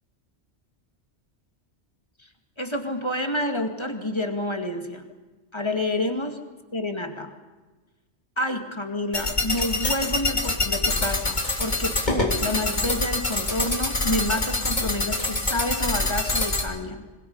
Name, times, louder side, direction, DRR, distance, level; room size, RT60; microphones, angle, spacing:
voice 1, 2.6-5.1 5.5-6.4 6.7-7.3 8.4-17.0, left 1 dB, 25° left, 5 dB, 2.3 m, -29 dB
sound 1, 9.1-16.6, left 2 dB, 40° left, 2.8 m, -25 dB
26.0 x 26.0 x 5.6 m, 1.2 s
omnidirectional pair, 1.1 m